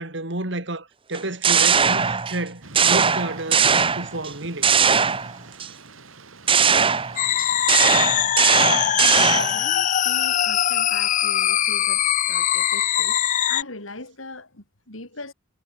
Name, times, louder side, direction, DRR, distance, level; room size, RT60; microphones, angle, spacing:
voice 1, 0.0-3.7 4.0-4.7, right 2 dB, 60° right, 3.6 m, -30 dB
sound 1, 1.1-2.4 2.7-4.3 4.6-5.7 6.5-9.6, right 6 dB, 25° right, 1.0 m, -19 dB
Thunder / Rain, 2.6-8.6, right 3 dB, 85° right, 3.9 m, -44 dB
sound 2, 7.2-13.6, left 11 dB, 40° left, 0.3 m, -22 dB
voice 2, 9.0-15.3, left 2 dB, 85° left, 7.3 m, -40 dB
head